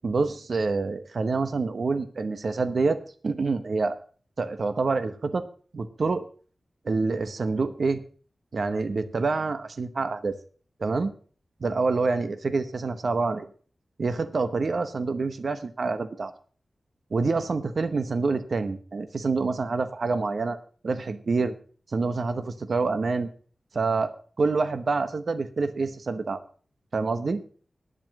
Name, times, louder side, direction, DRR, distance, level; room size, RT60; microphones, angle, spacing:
voice 1, 0.0-4.0 4.4-5.5 5.7-6.2 6.8-8.0 8.5-10.4 10.8-11.1 11.6-13.5 14.0-16.3 17.1-20.6 20.8-21.5 21.9-23.3 23.7-26.4 26.9-27.4, right 4 dB, 65° right, 10 dB, 0.9 m, -27 dB
10.0 x 7.6 x 7.4 m, 0.43 s
wide cardioid pair, 100°, 0 cm